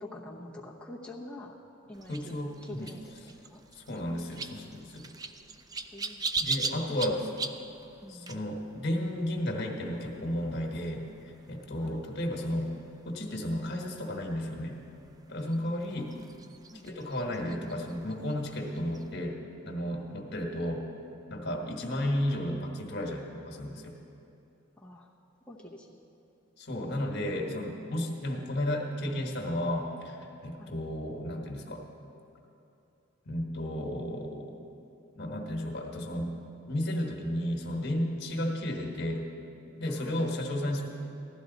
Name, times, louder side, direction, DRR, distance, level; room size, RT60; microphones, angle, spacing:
voice 1, 0.0-1.5 1.9-3.6 5.9-6.2 6.9-7.2 8.0-8.3 11.8-12.0 15.9-16.2 16.7-16.8 21.6-21.7 24.8-25.1 25.5-26.0 30.6-30.8 39.9-40.4, left 1 dB, 5° left, -6 dB, 0.8 m, -46 dB
sound 1, 1.9-19.1, right 4 dB, 20° right, 0.4 m, -42 dB
voice 2, 2.1-2.9 3.7-5.1 6.4-7.3 8.1-12.7 13.0-14.8 15.3-16.1 16.8-19.4 19.6-20.8 21.3-23.9 26.6-31.8 33.2-34.5 35.2-36.4 36.7-39.2 39.7-40.9, left 1 dB, 55° left, 1 dB, 1.4 m, -33 dB
15.5 x 12.0 x 4.1 m, 2.7 s
head